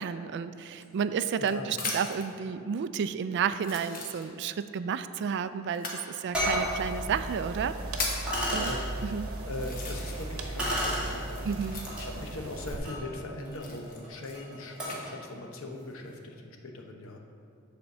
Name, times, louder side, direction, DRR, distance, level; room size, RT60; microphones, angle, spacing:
voice 1, 0.0-7.8 8.5-8.7 9.0-9.3 11.4-11.8, right 7 dB, 55° right, 12 dB, 0.3 m, -31 dB
sound 1, 0.6-2.3 3.0-3.1 3.6-4.6 5.7-6.0 6.9-7.0 7.5-8.3 9.0-9.1 9.5-10.4 10.7-12.2 13.5-15.0 15.7-16.1, left 3 dB, 45° left, 1.1 m, -38 dB
voice 2, 1.4-1.7 8.5-9.1 9.4-17.2, left 2 dB, 65° left, 2 dB, 0.9 m, -40 dB
sound 2, 5.7-5.8 6.3-6.7 7.6-7.7 8.3-8.8 10.6-11.1 11.9-12.0 12.5-15.1, equal, 5° right, 2.1 m, -33 dB
sound 3, 6.4-12.7, right 2 dB, 75° right, 0.9 m, -37 dB
8.0 x 4.3 x 6.7 m, 2.5 s
head